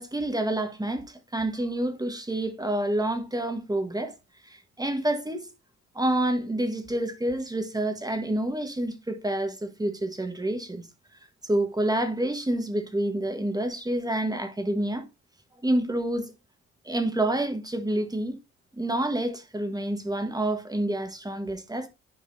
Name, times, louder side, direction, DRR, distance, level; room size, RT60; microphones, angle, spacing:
voice 1, 0.0-4.1 4.4-5.5 5.9-10.8 11.4-15.1 15.6-16.3 16.8-18.4 18.7-21.9, right 1 dB, 10° right, 1.6 m, -28 dB
10.5 x 4.6 x 2.7 m
cardioid pair, 90°, 30 cm